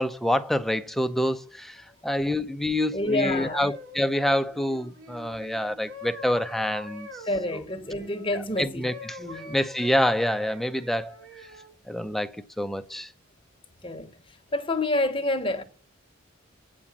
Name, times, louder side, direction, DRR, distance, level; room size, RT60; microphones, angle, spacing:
voice 1, 0.0-7.1 7.5-7.6 8.3-9.2 9.5-11.2 11.9-13.1, left 1 dB, ahead, 0.5 m, -27 dB
voice 2, 2.9-3.6 7.2-8.9 9.2-9.6 13.8-15.6, left 2 dB, 25° left, 1.0 m, -28 dB
sound 1, 3.0-8.4 8.8-11.7 12.4-12.6, left 2 dB, 80° right, 2.5 m, -44 dB
8.4 x 5.1 x 7.2 m
head